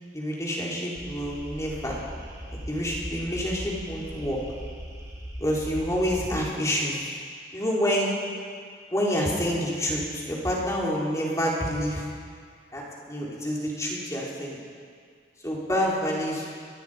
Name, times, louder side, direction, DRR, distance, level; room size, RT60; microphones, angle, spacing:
voice 1, 0.1-1.9 2.5-4.4 5.4-7.0 7.5-8.1 8.9-12.1 12.7-14.6 15.4-16.5, equal, 15° left, -4 dB, 4.3 m, -28 dB
sound 1, 0.9-6.4, equal, 15° right, 3.7 m, -39 dB
24.0 x 22.0 x 5.3 m, 2.1 s
head